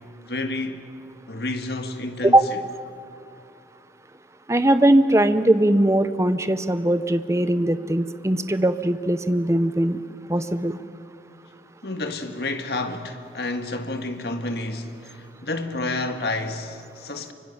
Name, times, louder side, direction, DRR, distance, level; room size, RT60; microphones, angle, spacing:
voice 1, 0.3-0.8 1.3-2.6 11.8-17.3, left 2 dB, 65° left, 1.7 m, -30 dB
voice 2, 4.5-10.0 10.3-10.8, right 1 dB, 15° right, 0.7 m, -20 dB
24.5 x 24.0 x 7.2 m
head